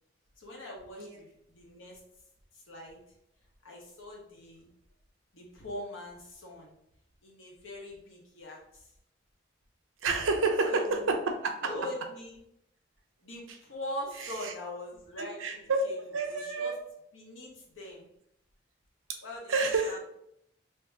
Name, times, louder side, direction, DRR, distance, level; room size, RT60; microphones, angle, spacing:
voice 1, 0.4-2.0 2.5-3.0 3.6-4.7 5.3-6.7 7.2-8.9 10.6-11.0 11.6-12.4 13.2-16.0 16.2-16.8 17.1-18.1 19.2-20.0, left 1 dB, 85° left, -2 dB, 1.1 m, -42 dB
voice 2, 10.0-10.8 11.4-11.5 14.4-14.5 15.2-15.9 16.1-16.8 19.5-20.0, right 3 dB, 90° right, 4 dB, 0.6 m, -29 dB
2.9 x 2.7 x 3.5 m, 0.76 s
head